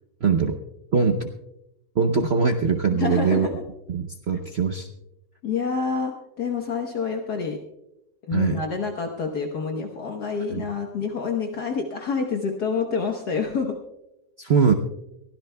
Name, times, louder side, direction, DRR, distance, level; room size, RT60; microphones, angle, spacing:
voice 1, 0.2-0.6 0.9-1.3 2.0-3.5 3.9-4.9 8.3-8.6 10.5-10.7 14.4-14.7, right 5 dB, 70° right, 5 dB, 0.6 m, -22 dB
voice 2, 2.9-3.5 4.3-4.4 5.4-6.1 6.4-7.6 8.3-13.7, left 5 dB, 55° left, 2 dB, 1.6 m, -27 dB
23.0 x 16.0 x 2.3 m, 0.88 s
omnidirectional pair, 2.1 m